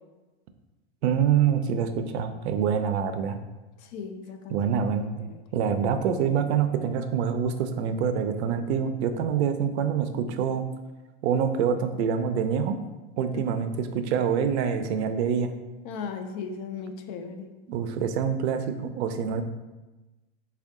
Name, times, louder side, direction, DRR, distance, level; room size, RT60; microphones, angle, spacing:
voice 1, 1.0-3.4 4.5-5.1 5.5-10.6 11.2-12.8 13.2-15.5 17.7-19.4, right 7 dB, 75° right, 9 dB, 0.5 m, -26 dB
voice 2, 3.8-4.6 5.2-5.4 13.3-13.4 15.8-17.5, left 5 dB, 50° left, 7 dB, 0.5 m, -37 dB
3.5 x 2.3 x 3.5 m, 1.1 s
supercardioid pair, 130°, 33 cm